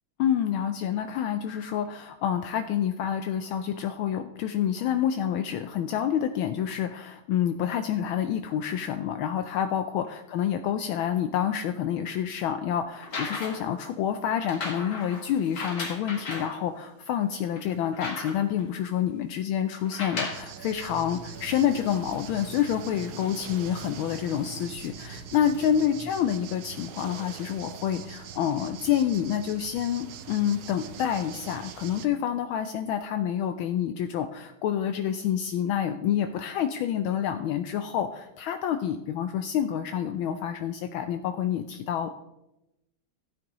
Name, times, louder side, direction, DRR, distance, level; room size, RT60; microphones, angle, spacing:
voice 1, 0.2-42.1, left 9 dB, 75° left, 8 dB, 1.3 m, -28 dB
sound 1, 12.9-13.7 14.4-16.6 17.1-17.2 17.6-18.6 19.8-20.5 21.5-21.6, left 3 dB, 50° left, 2.4 m, -36 dB
sound 2, 20.3-32.1, right 9 dB, 75° right, 0.9 m, -43 dB
sound 3, 20.8-26.3, equal, 10° left, 2.8 m, -45 dB
15.5 x 8.7 x 3.0 m, 0.93 s
omnidirectional pair, 2.4 m